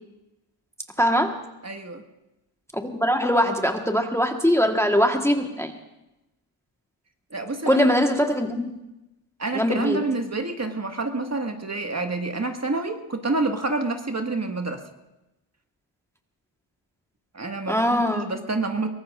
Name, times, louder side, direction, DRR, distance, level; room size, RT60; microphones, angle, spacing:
voice 1, 1.0-1.4 2.7-5.7 7.7-8.7 9.5-10.0 17.7-18.2, equal, 5° left, 3 dB, 1.4 m, -22 dB
voice 2, 1.6-2.0 7.3-7.9 9.4-14.8 17.3-18.9, right 3 dB, 30° right, 4 dB, 1.8 m, -28 dB
23.0 x 18.5 x 2.5 m, 0.94 s
supercardioid pair, 50°, 49 cm